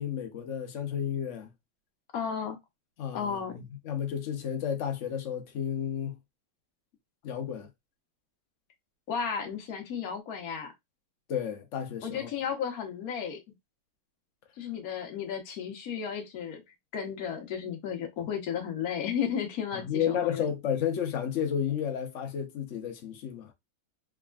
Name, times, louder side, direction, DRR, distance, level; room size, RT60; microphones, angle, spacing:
voice 1, 0.0-1.5 3.0-6.2 7.2-7.7 11.3-12.3 19.7-23.5, left 8 dB, 80° left, 0.6 m, -32 dB
voice 2, 2.1-2.6 3.1-3.5 9.1-10.7 12.0-13.4 14.6-16.6 16.9-20.5, left 7 dB, 50° left, 1.3 m, -33 dB
3.6 x 3.5 x 2.3 m
omnidirectional pair, 2.3 m